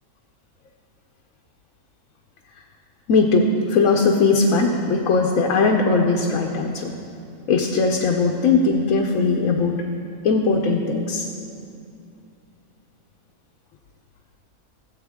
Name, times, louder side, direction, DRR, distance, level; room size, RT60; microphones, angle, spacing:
voice 1, 3.1-6.9 7.5-9.8 10.2-11.3, left 4 dB, 65° left, 1 dB, 1.1 m, -19 dB
16.5 x 7.9 x 3.6 m, 2.5 s
omnidirectional pair, 1.6 m